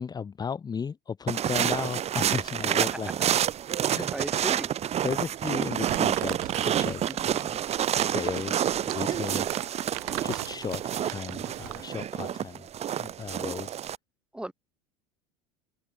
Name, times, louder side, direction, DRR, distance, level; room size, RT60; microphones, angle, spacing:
voice 1, 0.0-3.1 3.9-4.1 5.0-7.6 8.0-9.5 10.2-12.7 13.0-13.8, left 6 dB, 20° left, 0.8 m, -35 dB
sound 1, 1.3-14.0, right 10 dB, 35° right, 0.9 m, -28 dB
voice 2, 3.8-4.7 7.1-7.4 10.0-10.2 13.5-13.6 14.3-14.5, right 1 dB, 5° right, 2.4 m, -38 dB
Crumpling crinkling, 5.9-11.9, right 21 dB, 70° right, 1.5 m, -40 dB
open air
hypercardioid pair, 85°, 18 cm